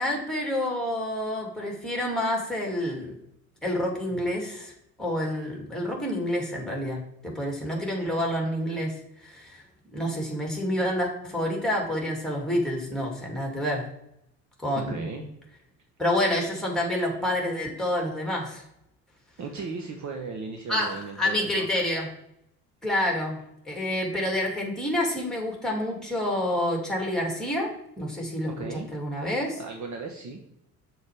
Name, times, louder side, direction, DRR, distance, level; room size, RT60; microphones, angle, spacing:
voice 1, 0.0-3.1 3.6-4.7 5.0-9.0 9.2-9.6 9.9-13.8 14.6-15.1 16.0-18.6 20.7-22.1 22.8-23.4 23.7-27.7 28.0-28.5 28.9-29.6, left 1 dB, ahead, -1 dB, 2.8 m, -28 dB
voice 2, 14.8-15.3 19.4-21.9 28.5-28.9 29.6-30.4, right 4 dB, 35° right, 3 dB, 1.2 m, -36 dB
6.4 x 4.6 x 5.1 m, 0.79 s
figure-of-eight pair, 60°, 48 cm